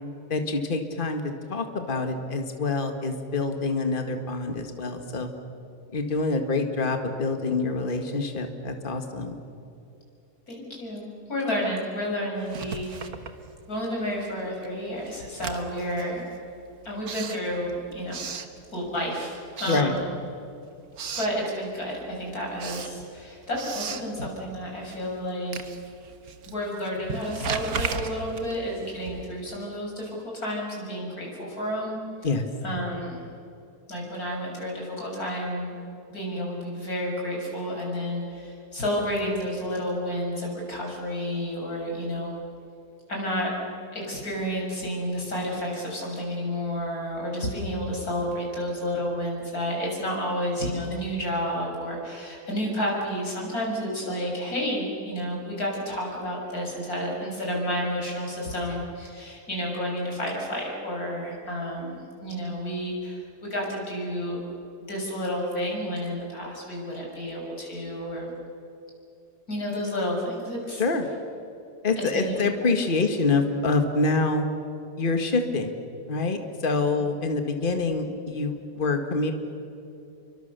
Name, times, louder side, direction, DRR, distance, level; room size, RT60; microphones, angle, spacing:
voice 1, 0.3-5.3 5.9-9.4 19.7-19.9 32.2-32.5 70.8-71.1 71.8-74.5 75.0-75.7 76.1-79.3, left 3 dB, 30° left, 6 dB, 1.9 m, -26 dB
voice 2, 10.5-13.2 13.7-16.2 16.9-18.2 18.7-20.1 21.2-25.6 26.5-32.0 32.6-33.3 33.9-35.7 36.1-42.4 43.1-43.5 43.9-64.4 64.8-68.3 69.5-70.8 72.1-72.5 73.0-73.1, equal, 60° left, -2 dB, 7.0 m, -31 dB
Writing, 12.4-14.0 14.3-19.1 19.5-20.5 20.7-21.4 21.8-29.5, right 5 dB, 60° right, 1.7 m, -37 dB
29.0 x 24.0 x 6.8 m, 2.7 s
omnidirectional pair, 1.8 m